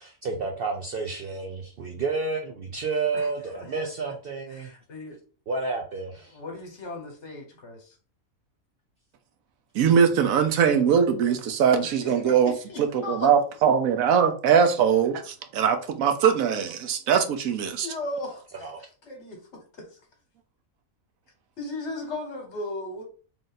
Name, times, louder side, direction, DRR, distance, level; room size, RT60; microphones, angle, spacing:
voice 1, 0.0-4.7 5.5-6.4 18.6-18.8, right 4 dB, 60° right, 0.6 m, -30 dB
voice 2, 4.5-5.2 6.3-7.9 11.8-13.3 17.8-18.7 19.0-19.9 21.6-23.0, left 2 dB, 55° left, 1.3 m, -37 dB
voice 3, 9.7-17.9, right 7 dB, 80° right, 1.0 m, -22 dB
3.4 x 2.5 x 3.9 m
omnidirectional pair, 1.4 m